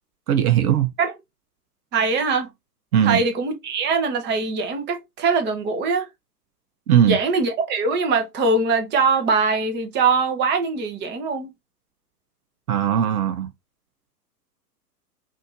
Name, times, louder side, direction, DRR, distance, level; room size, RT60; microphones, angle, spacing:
voice 1, 0.3-0.9 2.9-3.2 6.9-7.2 12.7-13.5, right 10 dB, 60° right, 0.9 m, -19 dB
voice 2, 1.9-2.5 3.0-6.1 7.0-11.5, right 4 dB, 20° right, 1.0 m, -22 dB
5.6 x 2.8 x 2.7 m
hypercardioid pair, 115°, 49 cm